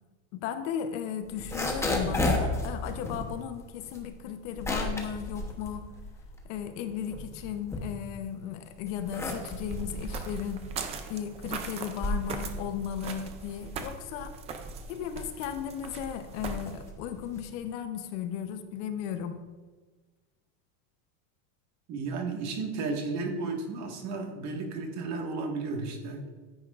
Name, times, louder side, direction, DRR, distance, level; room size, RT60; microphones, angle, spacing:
voice 1, 0.3-5.9 6.4-10.7 11.1-14.4 14.9-19.4, left 9 dB, 55° left, 8 dB, 0.9 m, -35 dB
sound 1, 1.2-6.6 6.9-8.4 8.8-17.6, left 2 dB, 5° left, 0.9 m, -34 dB
sound 2, 9.1-16.9, right 5 dB, 15° right, 0.3 m, -41 dB
voice 2, 21.9-26.2, right 3 dB, 40° right, 1 dB, 1.7 m, -33 dB
14.0 x 9.6 x 2.5 m, 1.3 s
supercardioid pair, 160°, 43 cm